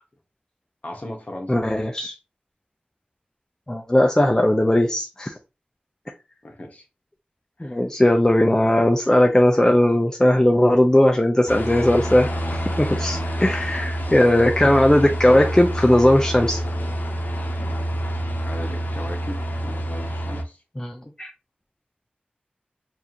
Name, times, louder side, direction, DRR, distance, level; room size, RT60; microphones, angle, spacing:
voice 1, 0.8-1.7 6.4-6.8 7.6-7.8 14.0-14.3 18.4-20.6, left 1 dB, 50° left, 1.2 m, -37 dB
voice 2, 1.5-2.1 3.7-5.3 7.6-16.6 20.8-21.3, left 1 dB, 20° left, 0.6 m, -18 dB
sound 1, 11.5-20.4, equal, 75° left, 0.7 m, -27 dB
4.6 x 2.6 x 2.9 m
wide cardioid pair, 55°, 3 cm